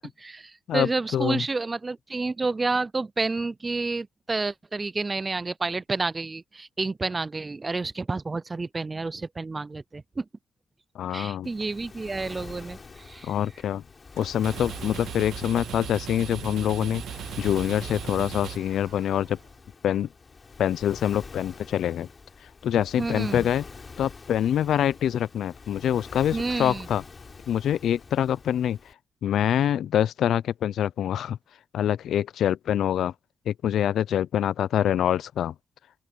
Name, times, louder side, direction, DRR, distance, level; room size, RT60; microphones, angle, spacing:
voice 1, 0.2-10.3 11.1-13.3 23.0-23.5 26.3-26.9, right 3 dB, 35° right, 0.5 m, -30 dB
voice 2, 0.7-1.5 10.9-11.5 13.2-13.8 14.2-19.4 19.8-20.1 20.6-22.1 22.4-23.6 24.0-27.0 27.5-28.9 29.2-31.4 31.7-33.1 33.5-35.5, left 10 dB, 80° left, 0.5 m, -25 dB
Waves surf, 11.4-28.9, left 4 dB, 45° left, 3.6 m, -45 dB
sound 1, 14.2-19.3, right 11 dB, 80° right, 2.0 m, -38 dB
open air
supercardioid pair, 55°, 0 cm